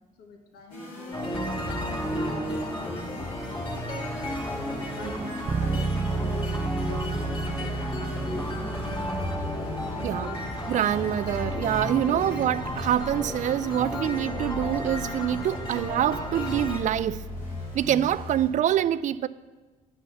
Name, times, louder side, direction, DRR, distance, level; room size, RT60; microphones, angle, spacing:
voice 1, 0.2-4.2 4.7-9.1 9.9-10.4, left 4 dB, 70° left, 1.4 m, -46 dB
sound 1, 0.7-18.5, left 1 dB, 85° left, 3.0 m, -39 dB
sound 2, 1.1-16.8, left 1 dB, 30° left, 2.8 m, -33 dB
Bass guitar, 5.5-15.2, right 3 dB, 30° right, 0.7 m, -34 dB
voice 2, 10.0-10.4 10.7-17.3 17.7-19.3, right 11 dB, 50° right, 0.4 m, -26 dB
8.1 x 6.2 x 5.8 m
hypercardioid pair, 55°, 17 cm